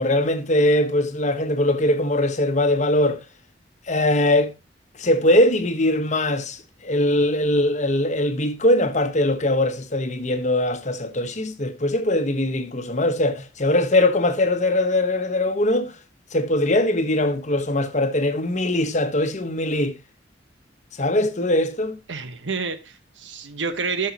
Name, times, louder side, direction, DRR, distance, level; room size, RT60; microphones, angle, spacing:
voice 1, 0.0-3.2 3.9-4.5 5.0-15.9 16.3-19.9 21.0-22.0, left 1 dB, 40° left, 1.1 m, -21 dB
voice 2, 22.1-24.1, right 4 dB, 85° right, 1.2 m, -29 dB
13.5 x 6.4 x 2.9 m
head